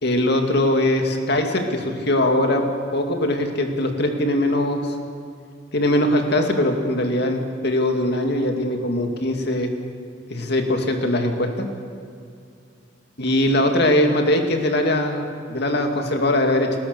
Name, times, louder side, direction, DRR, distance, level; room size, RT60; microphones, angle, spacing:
voice 1, 0.0-2.7 2.9-4.9 5.7-9.7 10.3-11.7 13.2-16.8, left 1 dB, 60° left, 4 dB, 2.4 m, -21 dB
29.5 x 13.0 x 6.9 m, 2.4 s
head